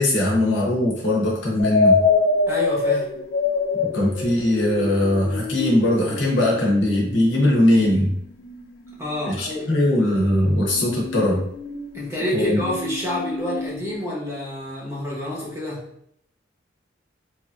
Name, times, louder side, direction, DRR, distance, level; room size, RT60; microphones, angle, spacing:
voice 1, 0.0-2.0 3.9-8.2 9.2-11.5 12.3-12.6, left 1 dB, 70° left, -3 dB, 0.8 m, -20 dB
sound 1, 1.6-9.4 10.6-14.0, left 4 dB, 50° left, 0.3 m, -26 dB
voice 2, 2.5-3.1 9.0-9.6 11.9-15.8, left 1 dB, 15° right, -5 dB, 0.7 m, -28 dB
3.0 x 2.5 x 2.4 m, 0.69 s
head